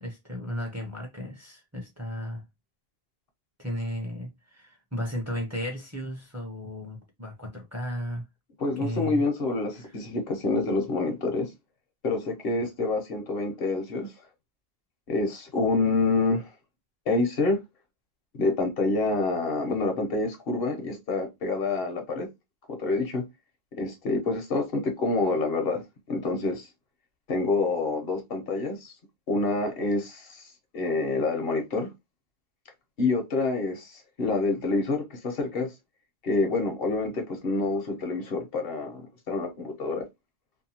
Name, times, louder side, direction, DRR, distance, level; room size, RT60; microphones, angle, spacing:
voice 1, 0.0-2.4 3.6-8.2 8.8-9.2 9.8-9.9, equal, 20° right, 0.6 m, -34 dB
voice 2, 8.6-11.5 12.0-14.1 15.1-16.5 17.1-17.6 18.3-22.3 22.7-23.2 23.7-25.8 26.1-26.7 27.3-28.9 29.3-31.9 33.0-35.7 36.2-40.1, left 3 dB, 65° left, 1.0 m, -27 dB
2.7 x 2.2 x 2.7 m
omnidirectional pair, 1.0 m